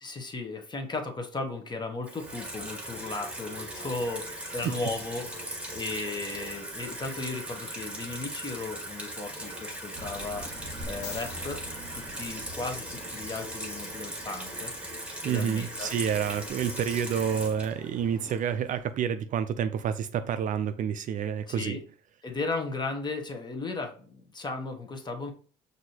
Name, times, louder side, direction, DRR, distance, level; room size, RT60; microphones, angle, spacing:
voice 1, 0.0-10.5 10.8-11.6 11.9-14.7 15.2-15.9 21.5-21.8 22.2-25.3, left 3 dB, 25° left, 0.9 m, -35 dB
Water tap faucet / Sink (filling or washing), 2.0-18.8, right 1 dB, 5° right, 1.6 m, -39 dB
sound 1, 9.9-18.3, right 1 dB, 25° right, 1.4 m, -47 dB
sound 2, 10.8-13.1 16.5-16.6, left 4 dB, 85° left, 1.1 m, -45 dB
voice 2, 15.2-21.8, right 8 dB, 50° right, 0.4 m, -29 dB
6.0 x 2.7 x 2.8 m
cardioid pair, 110°, 17 cm